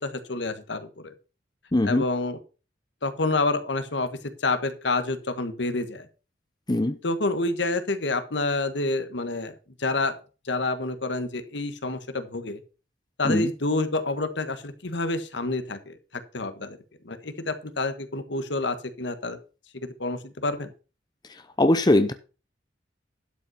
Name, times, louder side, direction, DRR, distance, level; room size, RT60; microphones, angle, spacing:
voice 1, 0.0-1.1 1.8-2.4 3.0-4.1 4.4-6.1 7.0-9.5 9.8-10.1 10.4-12.6 13.2-15.9 16.3-16.8 17.0-19.4 19.8-20.7, left 2 dB, 75° left, 10 dB, 1.3 m, -28 dB
voice 2, 1.7-2.0 6.7-7.0 13.2-13.5 21.6-22.1, left 1 dB, 25° left, 10 dB, 0.6 m, -20 dB
12.0 x 5.5 x 5.6 m, 0.34 s
head